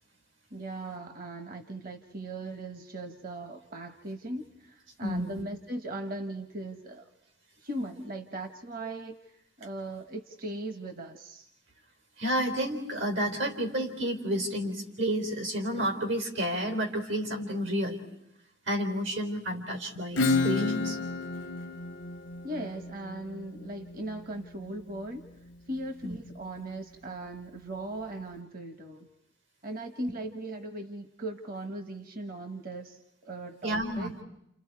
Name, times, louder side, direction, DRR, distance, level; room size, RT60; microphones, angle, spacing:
voice 1, 0.5-7.1 7.6-9.2 9.6-11.5 22.4-25.2 25.7-29.1 29.6-34.1, right 2 dB, 50° right, 8 dB, 1.1 m, -38 dB
voice 2, 5.0-5.4 12.2-18.0 18.7-21.0 26.0-26.2 33.6-34.1, equal, 85° right, 5 dB, 3.8 m, -30 dB
Acoustic guitar / Strum, 20.2-25.5, left 3 dB, 75° left, 0.8 m, -32 dB
29.5 x 29.5 x 4.7 m, 0.81 s
head